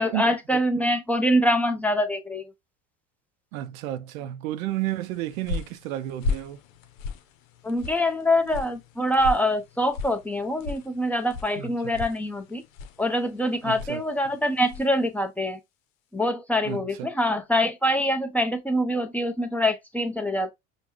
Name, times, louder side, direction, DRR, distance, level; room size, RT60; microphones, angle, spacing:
voice 1, 0.0-2.5 7.6-12.6 13.0-15.6 16.1-20.5, equal, 5° left, 0.8 m, -24 dB
voice 2, 3.5-6.6 11.6-11.9 13.6-14.0 16.6-17.1, right 14 dB, 90° right, 0.6 m, -32 dB
sound 1, 4.9-15.0, left 4 dB, 85° left, 0.8 m, -37 dB
5.3 x 2.3 x 3.0 m
supercardioid pair, 90°, 39 cm